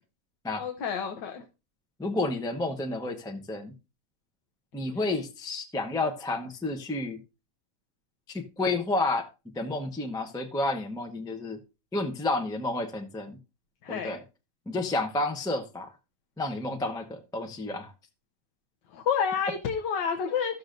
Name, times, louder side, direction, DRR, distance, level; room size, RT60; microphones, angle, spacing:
voice 1, 0.6-1.4 4.9-5.1 13.8-14.2 18.9-20.6, left 7 dB, 80° left, 1.5 m, -29 dB
voice 2, 2.0-3.7 4.7-7.2 8.3-9.3 9.6-11.6 11.9-13.4 13.9-14.2 14.7-15.9 16.4-17.9, left 2 dB, 5° left, 0.3 m, -30 dB
13.0 x 7.0 x 2.6 m
omnidirectional pair, 1.9 m